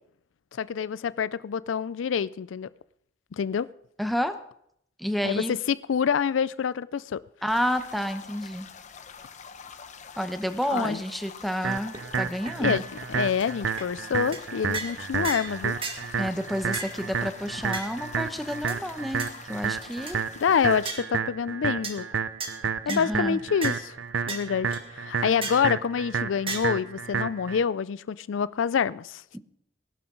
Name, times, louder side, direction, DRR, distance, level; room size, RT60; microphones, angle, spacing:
voice 1, 0.5-2.7 3.3-3.7 5.2-7.2 10.7-11.0 12.6-12.8 13.1-15.8 16.1-16.2 20.4-22.1 22.9-23.9 24.3-29.2, left 7 dB, 85° left, 19 dB, 0.4 m, -27 dB
voice 2, 4.0-4.3 5.0-5.6 7.4-8.7 10.2-12.8 16.2-20.2 22.9-23.4 29.3-29.4, equal, ahead, 8 dB, 0.9 m, -30 dB
sound 1, 7.5-20.9, left 6 dB, 40° left, 0.9 m, -46 dB
sound 2, 11.6-11.7 11.9-12.0 12.5-12.6 13.0-13.1 13.4-13.5 13.8-13.9 14.3-14.4 14.7-15.0 15.2-15.5 15.8-16.0 16.7-17.0 17.7-17.9 18.7-18.8 19.2-19.3 19.8-20.1 20.8-21.1 21.8-22.0 22.4-22.5 22.9-23.1 23.6-23.8 24.3-24.4 24.7-24.8 25.4-25.7 26.5-26.6, right 3 dB, 30° right, 1.8 m, -34 dB
sound 3, 11.6-27.6, right 6 dB, 80° right, 0.7 m, -31 dB
19.5 x 11.5 x 3.8 m, 0.71 s
head